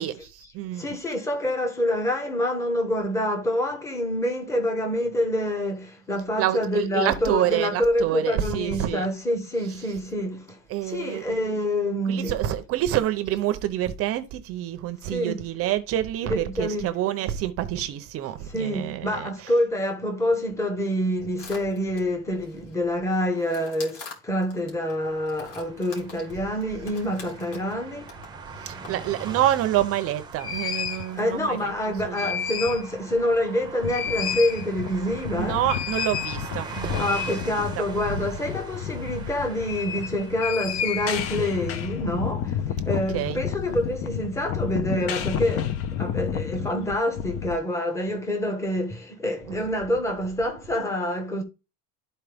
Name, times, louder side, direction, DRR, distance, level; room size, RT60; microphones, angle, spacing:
voice 1, 0.0-1.0 6.4-9.1 10.7-11.3 12.1-19.5 28.6-31.7 32.1-32.3 35.3-37.4 38.1-38.2 43.1-43.4, right 12 dB, 40° right, 0.7 m, -27 dB
voice 2, 0.8-10.6 10.8-12.4 15.0-15.4 16.2-16.9 18.5-28.1 31.1-35.6 37.0-42.6 42.8-45.7 46.0-51.4, left 1 dB, 10° left, 1.1 m, -27 dB
sound 1, 21.4-22.7 23.1-24.9 25.3-27.8 28.1-28.3 28.6-28.9 29.2-29.3, left 4 dB, 80° left, 3.3 m, -45 dB
sound 2, 25.0-41.7, right 4 dB, 10° right, 0.8 m, -42 dB
sound 3, 29.8-29.9 30.4-31.1 31.9-32.9 33.3-33.4 33.7-47.6, left 8 dB, 40° left, 0.6 m, -30 dB
12.0 x 4.4 x 3.4 m
cardioid pair, 170°, 35 cm